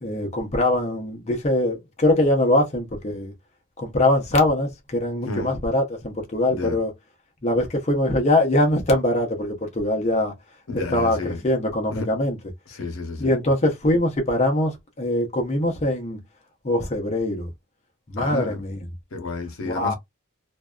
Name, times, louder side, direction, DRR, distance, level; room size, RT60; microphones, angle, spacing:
voice 1, 0.0-3.3 3.8-6.9 7.4-10.3 10.9-12.4 13.2-16.2 16.6-17.5 18.1-18.9 19.6-19.9, left 1 dB, 30° left, 0.6 m, -22 dB
voice 2, 10.7-11.4 11.9-12.1 12.7-13.3 18.2-18.6 19.1-19.9, left 3 dB, 70° left, 0.8 m, -30 dB
2.5 x 2.2 x 2.3 m
head